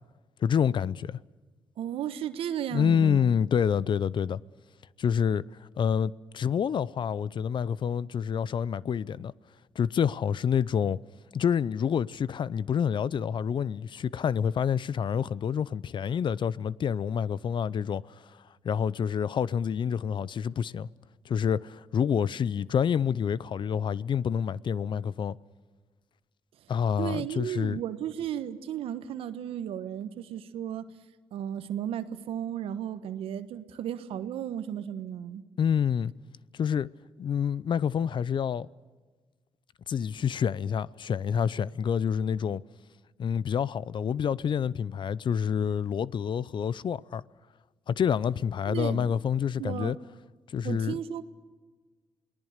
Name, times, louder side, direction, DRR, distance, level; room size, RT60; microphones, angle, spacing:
voice 1, 0.4-1.2 2.7-4.4 5.0-9.3 9.8-11.0 11.3-18.4 18.6-20.9 21.3-25.4 26.7-27.8 35.6-36.1 36.5-36.9 37.2-38.7 39.9-42.6 43.2-47.2 47.9-50.0 50.5-51.0, left 7 dB, 55° left, 0.6 m, -28 dB
voice 2, 1.8-3.3 27.0-30.9 31.3-35.4 48.7-49.1 49.6-49.9 50.6-51.2, right 10 dB, 80° right, 1.2 m, -34 dB
28.0 x 19.5 x 6.6 m
supercardioid pair, 60°, 10 cm